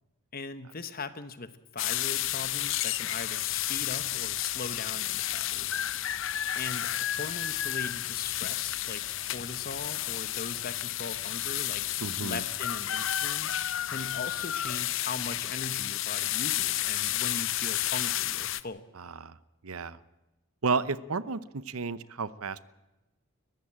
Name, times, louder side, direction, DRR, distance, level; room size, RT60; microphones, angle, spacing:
voice 1, 0.3-5.9 6.6-9.0 9.3-11.9 12.2-18.8, left 4 dB, 40° left, 11 dB, 1.1 m, -40 dB
sound 1, 1.8-18.6, left 13 dB, 60° left, 0.6 m, -31 dB
voice 2, 12.0-12.4 18.9-19.4 19.6-20.0 20.6-22.7, right 4 dB, 75° right, 16 dB, 0.8 m, -32 dB
21.5 x 14.5 x 8.8 m, 1.0 s
head